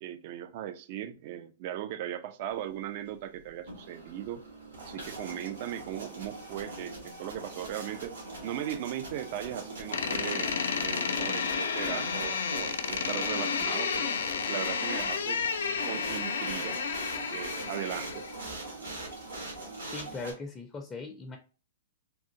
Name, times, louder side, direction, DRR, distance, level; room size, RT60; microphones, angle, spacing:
voice 1, 0.0-4.4 4.8-8.2 8.4-10.5 10.8-14.1 14.5-15.4 15.9-16.8 17.3-18.3, right 11 dB, 50° right, 0.4 m, -38 dB
sound 1, 3.5-20.3, right 2 dB, 80° right, 1.5 m, -42 dB
Door, 9.9-18.4, left 6 dB, 70° left, 0.4 m, -31 dB
voice 2, 19.9-21.4, left 3 dB, 20° left, 0.5 m, -39 dB
3.4 x 2.4 x 2.7 m
hypercardioid pair, 115°, 0 cm